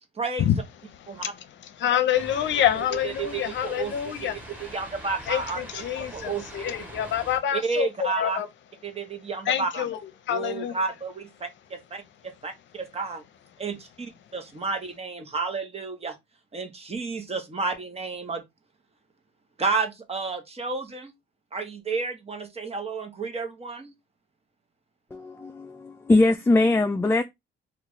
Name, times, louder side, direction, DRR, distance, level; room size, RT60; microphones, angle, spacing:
voice 1, 0.2-0.5 1.1-1.2 3.0-3.9 4.2-4.3 4.6-5.8 6.1-6.6 7.5-8.4 8.8-9.8 10.3-13.2 13.6-16.2 16.5-18.4 19.6-21.1 21.5-23.9, right 4 dB, 30° right, 0.9 m, -31 dB
voice 2, 0.9-4.4 5.2-8.5 9.0-9.1 9.4-10.7, left 10 dB, 70° left, 0.6 m, -27 dB
sound 1, 2.1-7.4, equal, 10° right, 1.2 m, -42 dB
voice 3, 25.1-27.2, left 2 dB, 10° left, 0.3 m, -21 dB
3.1 x 2.4 x 3.6 m
cardioid pair, 90°, 20 cm